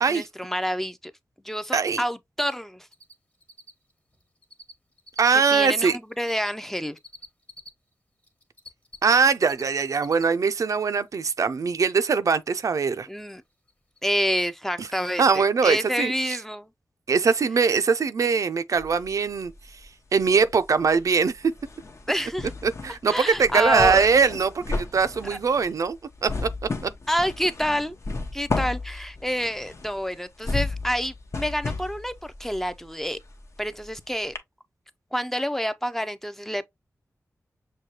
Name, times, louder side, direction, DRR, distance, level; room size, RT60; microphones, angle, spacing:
voice 1, 0.1-1.1 1.4-2.9 5.3-7.0 13.1-13.4 14.0-16.7 22.1-22.5 23.1-24.1 27.1-28.0 28.3-33.2 33.6-34.3 35.1-36.6, equal, 5° left, 0.4 m, -28 dB
voice 2, 1.7-2.0 5.2-6.0 9.0-13.1 14.8-14.9 15.2-16.4 17.1-19.5 20.1-21.5 22.6-26.0 26.2-26.5 26.8-26.9, right 5 dB, 70° right, 0.4 m, -22 dB
Cricket, 2.9-3.1 3.4-4.7 5.0-7.7 8.2-9.6 9.9-10.2 10.6-10.7 13.2-13.3 13.7-13.8 14.0-14.1, left 1 dB, 25° left, 1.0 m, -45 dB
sound 1, 18.8-19.9 20.2-34.0 34.4-34.5, left 3 dB, 55° left, 0.7 m, -34 dB
6.3 x 2.2 x 2.8 m
wide cardioid pair, 70°, 6 cm